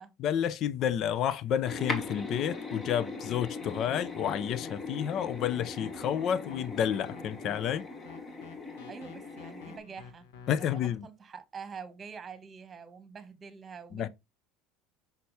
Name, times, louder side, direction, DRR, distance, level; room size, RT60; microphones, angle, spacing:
voice 1, 0.2-7.9 10.5-11.1 13.9-14.1, left 9 dB, 50° left, 0.6 m, -30 dB
sound 1, 1.7-9.8, left 3 dB, 25° left, 1.5 m, -39 dB
sound 2, 3.3-10.9, left 7 dB, 85° left, 1.3 m, -49 dB
voice 2, 8.9-14.1, right 6 dB, 25° right, 1.3 m, -46 dB
5.9 x 5.8 x 3.2 m
supercardioid pair, 110°, 0 cm